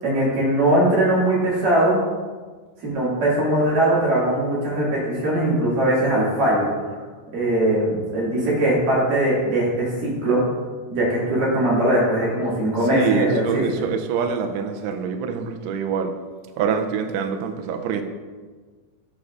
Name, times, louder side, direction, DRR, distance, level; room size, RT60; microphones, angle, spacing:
voice 1, 0.0-2.0 2.8-6.7 7.3-10.5 10.9-13.6, right 1 dB, 55° right, -8 dB, 3.5 m, -20 dB
voice 2, 12.9-16.2 16.6-18.0, right 6 dB, 85° right, 5 dB, 2.4 m, -25 dB
11.5 x 4.6 x 2.4 m, 1.4 s
omnidirectional pair, 5.1 m